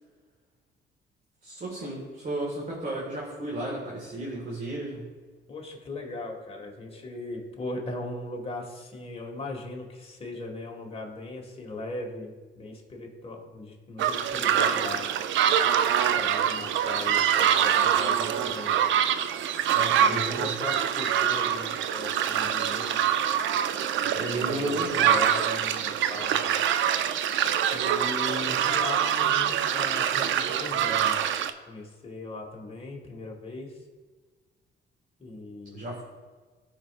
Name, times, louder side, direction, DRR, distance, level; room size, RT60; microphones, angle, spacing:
voice 1, 1.4-5.1 19.7-20.6 24.1-25.2 29.4-29.5 35.7-36.0, right 1 dB, 40° right, -4 dB, 1.8 m, -33 dB
voice 2, 5.5-15.2 16.1-18.8 19.9-23.1 24.0-26.5 27.7-31.2 31.7-33.7 35.2-35.8, left 2 dB, 30° left, 0 dB, 1.8 m, -38 dB
sound 1, 14.0-31.5, right 9 dB, 75° right, 0.4 m, -25 dB
13.5 x 4.7 x 2.5 m, 1.4 s
cardioid pair, 90°, 20 cm